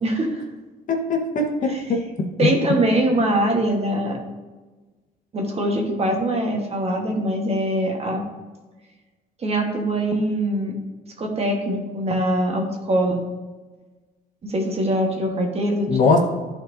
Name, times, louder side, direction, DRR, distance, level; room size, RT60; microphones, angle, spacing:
voice 1, 0.0-0.4 2.4-4.2 5.3-8.2 9.4-10.7 11.2-13.2 14.4-15.9, right 1 dB, 35° right, 2 dB, 1.3 m, -22 dB
voice 2, 0.9-2.0 2.4-2.5 15.9-16.2, left 3 dB, 50° left, 2 dB, 1.2 m, -20 dB
11.5 x 4.3 x 2.7 m, 1.3 s
cardioid pair, 110°, 17 cm